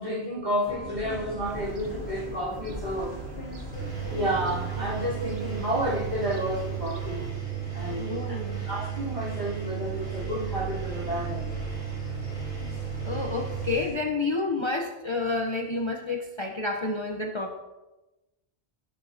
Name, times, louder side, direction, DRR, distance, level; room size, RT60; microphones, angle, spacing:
voice 1, 0.0-3.1 4.1-7.3 7.7-8.4 8.6-11.4, equal, 40° right, -8 dB, 3.2 m, -31 dB
sound 1, 0.7-14.0, left 2 dB, 60° left, 2.1 m, -40 dB
Fowl / Gull seagull, 1.4-7.3, right 4 dB, 70° right, 1.2 m, -45 dB
Engine, 3.7-13.7, right 10 dB, 10° left, 3.4 m, -34 dB
voice 2, 8.0-8.6 13.0-17.6, left 3 dB, 30° left, 1 dB, 0.8 m, -29 dB
16.5 x 7.0 x 2.8 m, 1.1 s
omnidirectional pair, 1.1 m